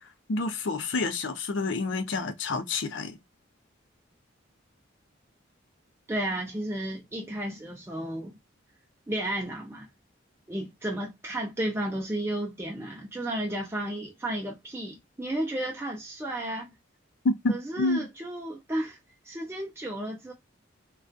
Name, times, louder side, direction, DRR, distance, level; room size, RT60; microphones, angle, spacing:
voice 1, 0.0-3.2 17.2-18.1, left 3 dB, 70° left, 0.5 m, -29 dB
voice 2, 6.1-8.4 9.1-9.9 10.5-16.7 17.5-19.0 19.2-20.3, right 1 dB, 10° right, 0.4 m, -33 dB
2.3 x 2.3 x 2.4 m
head